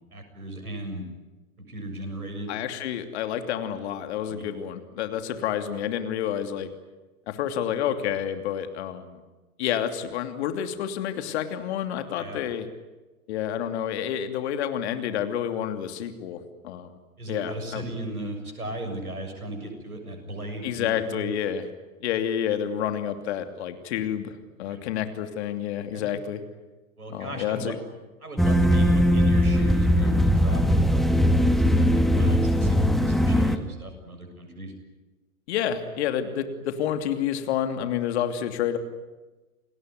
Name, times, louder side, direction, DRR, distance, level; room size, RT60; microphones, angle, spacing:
voice 1, 0.1-1.1 1.6-2.5 4.3-4.6 12.2-12.4 17.2-21.3 24.7-24.8 25.9-26.1 27.0-27.7 28.2-34.7, right 1 dB, 85° right, 5 dB, 7.1 m, -37 dB
voice 2, 2.5-6.7 7.3-9.2 9.6-12.7 13.3-17.0 17.3-17.8 20.6-21.6 22.0-26.4 27.1-27.8 35.5-38.8, left 9 dB, 50° left, 8 dB, 2.9 m, -29 dB
sound 1, 28.4-33.6, equal, ahead, 1.4 m, -20 dB
29.0 x 20.0 x 9.5 m, 1.2 s
figure-of-eight pair, 105°, 43 cm